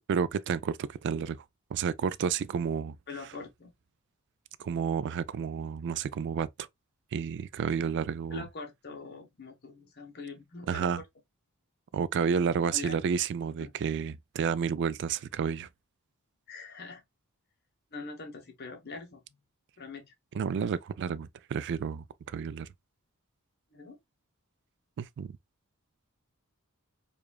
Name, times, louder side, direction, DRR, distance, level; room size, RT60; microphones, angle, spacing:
voice 1, 0.1-1.4 1.7-3.0 4.6-6.7 7.1-8.4 10.7-11.0 11.9-15.7 20.3-22.7 25.0-25.3, right 6 dB, 55° right, 0.3 m, -31 dB
voice 2, 3.1-3.7 8.3-11.0 12.7-13.0 13.6-13.7 16.5-17.0 17.9-19.4 19.8-20.0 23.7-24.0, left 4 dB, 50° left, 1.0 m, -43 dB
4.8 x 2.4 x 2.2 m
head